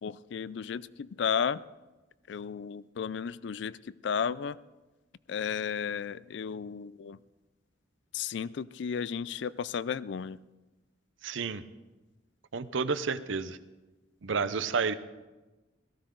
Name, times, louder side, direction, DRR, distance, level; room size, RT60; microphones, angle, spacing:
voice 1, 0.0-1.6 2.3-4.6 5.3-7.2 8.1-10.4, left 7 dB, 65° left, 19 dB, 0.3 m, -33 dB
voice 2, 11.2-11.6 12.5-13.6 14.2-14.9, right 5 dB, 75° right, 14 dB, 0.6 m, -30 dB
17.0 x 14.5 x 3.8 m, 1.2 s
head